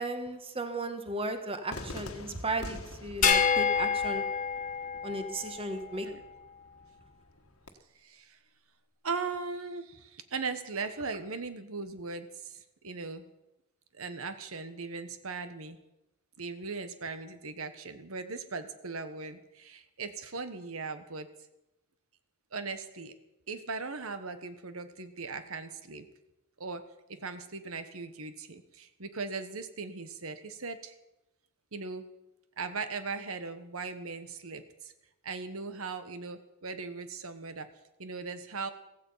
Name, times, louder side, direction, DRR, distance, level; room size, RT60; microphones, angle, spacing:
voice 1, 0.0-4.2 5.0-6.1, right 2 dB, 25° right, 8 dB, 1.5 m, -35 dB
Cheering / Fireworks, 1.7-7.7, left 2 dB, 90° left, 1.6 m, -47 dB
sound 1, 3.2-5.8, left 6 dB, 40° left, 1.7 m, -28 dB
voice 2, 8.0-8.4 9.0-13.2 13.9-15.8 16.4-21.3 22.5-23.1 23.5-26.1 26.6-26.8 27.1-30.9 31.7-32.0 32.6-34.9 35.2-37.7 38.0-38.7, right 4 dB, 80° right, 10 dB, 1.3 m, -39 dB
16.0 x 15.5 x 5.7 m, 0.90 s
head